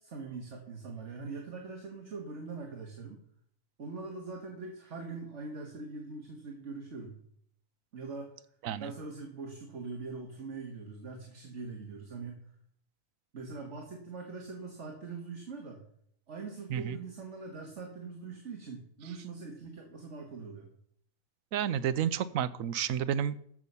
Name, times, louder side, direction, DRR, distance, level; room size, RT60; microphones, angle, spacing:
voice 1, 0.0-3.2 3.8-7.2 7.9-8.3 8.8-12.4 13.3-15.9 16.3-20.7, right 4 dB, 60° right, 2 dB, 1.8 m, -42 dB
voice 2, 21.5-23.5, right 9 dB, 85° right, 15 dB, 1.1 m, -31 dB
14.0 x 6.2 x 5.5 m, 0.66 s
omnidirectional pair, 1.4 m